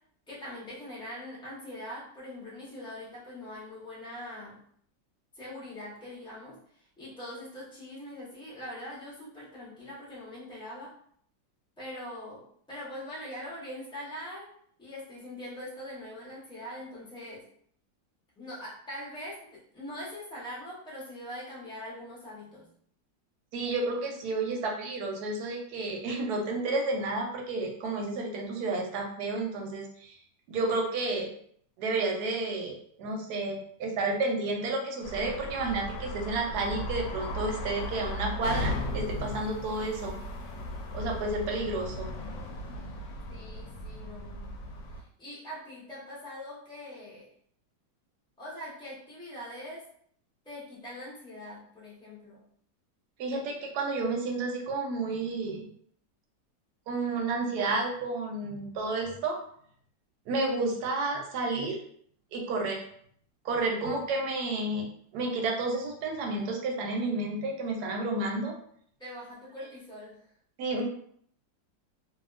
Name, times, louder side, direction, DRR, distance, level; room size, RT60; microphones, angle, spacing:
voice 1, 0.3-4.6 5.3-6.6 7.0-10.9 11.8-14.5 14.8-17.4 18.4-22.7 43.3-44.6 44.9-47.2 48.4-49.8 50.4-52.4 69.0-70.2, left 1 dB, 5° left, -8 dB, 0.5 m, -42 dB
voice 2, 23.5-30.2 30.5-31.3 31.8-40.2 40.9-42.1 53.2-55.7 56.9-59.4 60.3-61.8 62.3-62.8 63.4-64.9 65.1-68.5 70.6-70.8, right 2 dB, 70° right, 1 dB, 1.0 m, -31 dB
sound 1, 35.0-45.0, left 1 dB, 75° left, 1.2 m, -36 dB
2.8 x 2.6 x 2.4 m, 0.63 s
omnidirectional pair, 2.0 m